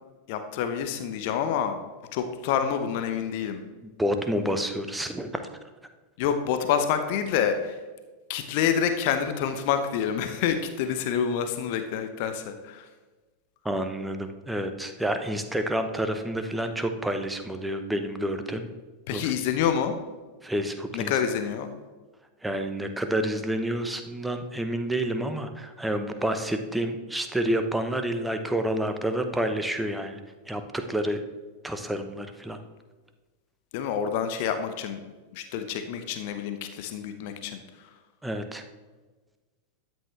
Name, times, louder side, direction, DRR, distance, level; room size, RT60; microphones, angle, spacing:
voice 1, 0.3-1.8 2.1-3.6 6.2-7.8 8.3-12.9 19.1-19.9 20.9-21.7 33.7-35.0 35.3-37.6, left 8 dB, 50° left, 8 dB, 0.9 m, -27 dB
voice 2, 4.0-5.4 13.6-18.7 19.1-19.3 20.4-21.1 22.4-30.2 30.5-31.2 31.6-32.6 38.2-38.6, right 1 dB, 5° right, 7 dB, 1.0 m, -29 dB
13.0 x 9.3 x 3.4 m, 1.3 s
figure-of-eight pair, 90°, 0 cm